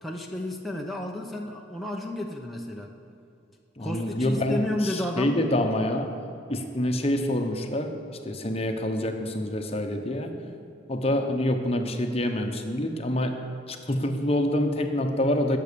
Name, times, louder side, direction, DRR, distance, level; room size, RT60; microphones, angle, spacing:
voice 1, 0.0-2.9 3.8-5.5, left 1 dB, ahead, -1 dB, 0.8 m, -31 dB
voice 2, 3.8-6.2 6.5-8.0 8.2-10.3 10.9-13.4 13.7-15.6, left 1 dB, 30° left, 5 dB, 1.0 m, -26 dB
20.5 x 7.8 x 6.9 m, 2.7 s
head